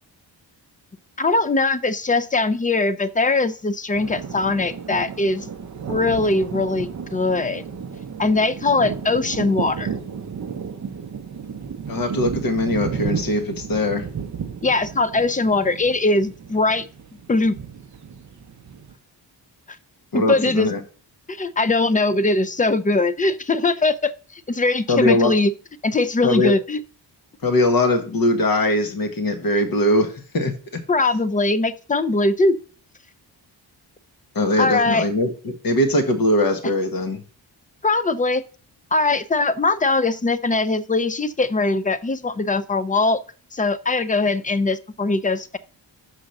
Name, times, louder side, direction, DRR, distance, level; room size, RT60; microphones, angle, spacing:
voice 1, 1.2-5.5 5.9-7.6 8.2-9.9 14.6-16.9 17.3-17.6 20.1-20.7 21.3-25.5 25.8-26.8 30.9-32.6 34.6-35.1 37.8-38.4 38.9-43.2 43.5-45.6, left 3 dB, 20° left, 14 dB, 0.4 m, -21 dB
sound 1, 3.9-18.9, right 6 dB, 40° right, 0.6 m, -33 dB
voice 2, 11.9-14.0 20.1-20.8 24.9-25.3 26.2-26.5 27.4-30.8 34.3-37.2, left 1 dB, 50° left, 6 dB, 1.3 m, -21 dB
5.8 x 4.9 x 6.4 m, 0.40 s
wide cardioid pair, 145°, 45 cm